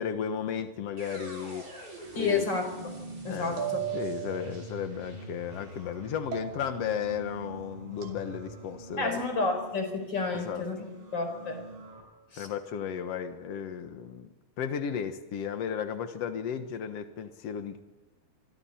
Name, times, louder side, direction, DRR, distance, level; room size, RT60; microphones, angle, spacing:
voice 1, 0.0-1.7 2.2-2.5 3.3-3.6 3.9-9.2 10.3-10.6 12.4-14.3 14.6-17.8, left 8 dB, 80° left, 7 dB, 1.3 m, -34 dB
sound 1, 1.0-8.9, equal, 30° right, 6.9 m, -46 dB
sound 2, 1.2-2.0 3.6-4.5 6.3-7.0 8.0-8.2, right 10 dB, 70° right, 4.6 m, -37 dB
sound 3, 2.0-12.0, right 2 dB, 55° right, 8.6 m, -47 dB
voice 2, 2.1-2.9 3.2-3.8 9.0-10.8 11.1-11.6 12.3-12.5, left 4 dB, 25° left, 5 dB, 4.8 m, -30 dB
27.0 x 24.0 x 4.4 m, 1.1 s
omnidirectional pair, 4.8 m